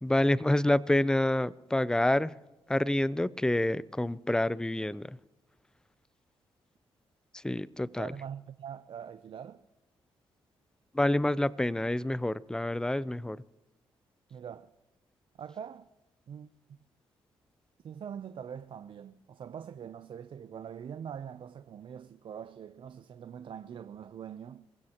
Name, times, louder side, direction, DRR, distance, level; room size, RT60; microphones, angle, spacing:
voice 1, 0.0-2.3 2.7-5.2 7.3-8.1 10.9-13.4, left 1 dB, 5° left, 0.5 m, -28 dB
voice 2, 8.0-9.6 14.3-14.7 15.4-15.9 16.3-16.5 17.8-24.7, right 8 dB, 60° right, 0.6 m, -43 dB
26.0 x 16.0 x 3.0 m
cardioid pair, 75°, 10 cm